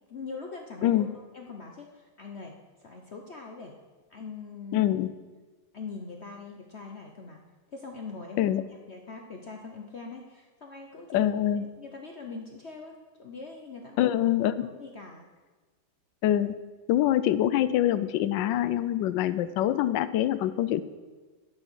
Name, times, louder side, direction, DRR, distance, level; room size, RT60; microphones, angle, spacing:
voice 1, 0.1-3.7 4.1-4.9 5.7-7.4 7.7-8.6 8.9-11.2 11.8-14.2 14.7-15.3, left 4 dB, 50° left, 1 dB, 0.8 m, -42 dB
voice 2, 4.7-5.1 8.4-8.6 11.1-11.6 14.0-14.7 16.2-16.6 16.9-20.8, left 12 dB, 75° left, 13 dB, 1.2 m, -25 dB
9.5 x 8.6 x 6.3 m, 1.3 s
omnidirectional pair, 2.2 m